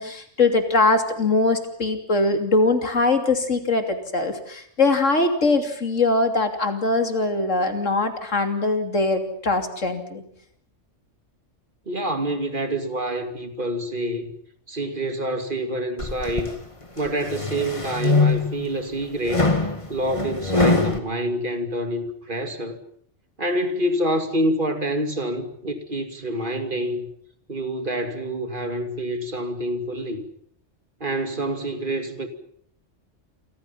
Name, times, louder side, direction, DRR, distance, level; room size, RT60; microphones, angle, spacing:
voice 1, 0.0-10.2, left 3 dB, 90° left, 3.3 m, -22 dB
voice 2, 11.9-14.3 14.7-16.5 17.0-19.5 19.9-22.8 23.4-27.1 27.5-30.2 31.0-32.3, right 1 dB, 40° right, 2.8 m, -27 dB
sound 1, 16.0-16.5 17.1-18.7 19.3-21.0, left 3 dB, 25° left, 2.3 m, -22 dB
29.0 x 24.5 x 5.8 m
omnidirectional pair, 1.3 m